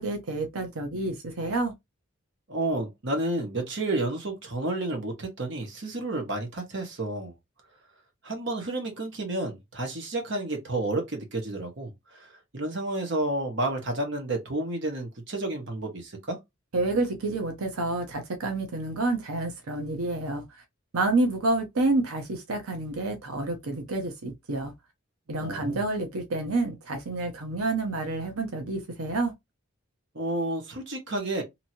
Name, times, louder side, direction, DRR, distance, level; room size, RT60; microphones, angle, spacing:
voice 1, 0.0-1.7 16.7-20.4 20.9-24.7 25.3-29.3, right 2 dB, 90° right, 0.8 m, -29 dB
voice 2, 2.5-7.3 8.2-16.4 25.4-25.8 30.1-31.4, right 2 dB, 55° right, 1.0 m, -31 dB
2.9 x 2.7 x 2.6 m
head